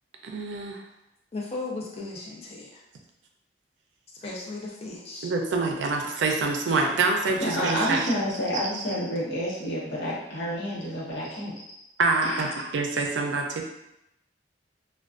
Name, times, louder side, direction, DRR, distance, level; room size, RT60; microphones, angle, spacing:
voice 1, 0.2-0.8 5.2-8.1 8.5-8.6 12.0-12.5 12.7-13.6, right 3 dB, 80° right, 2 dB, 0.4 m, -26 dB
voice 2, 1.3-2.7 4.2-5.3, left 3 dB, 35° left, -2 dB, 0.4 m, -36 dB
voice 3, 7.4-11.6 12.2-12.5, equal, 70° left, -6 dB, 0.8 m, -29 dB
2.4 x 2.2 x 2.3 m, 0.85 s
head